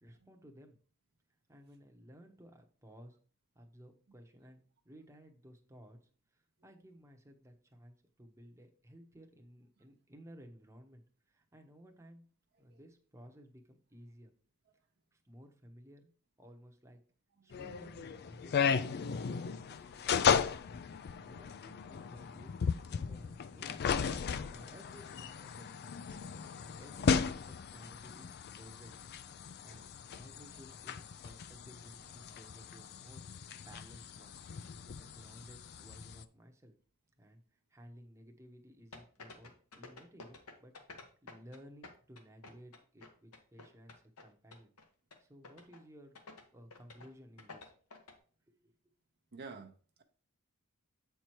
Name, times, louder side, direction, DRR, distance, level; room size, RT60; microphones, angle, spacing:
voice 1, 0.0-0.8 1.5-3.2 3.5-12.3 12.6-14.3 15.1-16.1 16.4-17.0 17.4-19.1 19.4-20.5 21.1-24.1 24.4-26.2 26.7-29.1 29.6-29.8 30.1-33.3 33.6-34.4 34.9-36.7 37.2-37.4 37.7-40.8 41.2-44.7 45.2-47.7 48.5-48.7, equal, 15° right, 0.9 m, -56 dB
sound 1, 17.5-36.2, left 6 dB, 45° left, 0.4 m, -36 dB
sound 2, 38.9-41.6 41.8-44.2 44.5-44.8 45.1-45.2 45.4-45.8 46.1-46.4 46.7-47.1 47.4-48.1, left 3 dB, 75° left, 1.4 m, -51 dB
voice 2, 49.3-49.7, right 4 dB, 45° right, 0.7 m, -49 dB
8.1 x 4.6 x 4.5 m
head